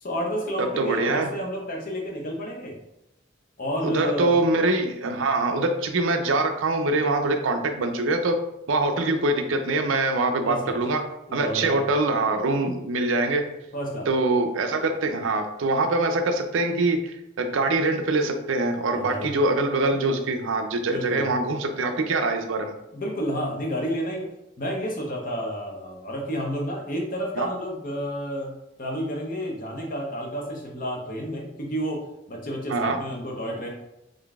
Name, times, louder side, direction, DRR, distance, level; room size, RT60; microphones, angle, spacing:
voice 1, 0.0-2.8 3.6-4.4 10.4-10.8 11.3-11.8 13.7-14.1 18.9-19.3 20.9-21.2 22.9-24.3 24.6-33.7, equal, 45° left, 0 dB, 0.7 m, -30 dB
voice 2, 0.6-1.3 3.8-8.4 8.7-11.0 11.3-13.4 14.1-22.7 27.4-27.5 32.7-33.0, right 2 dB, 75° right, 6 dB, 0.5 m, -24 dB
3.8 x 3.3 x 2.4 m, 0.86 s
head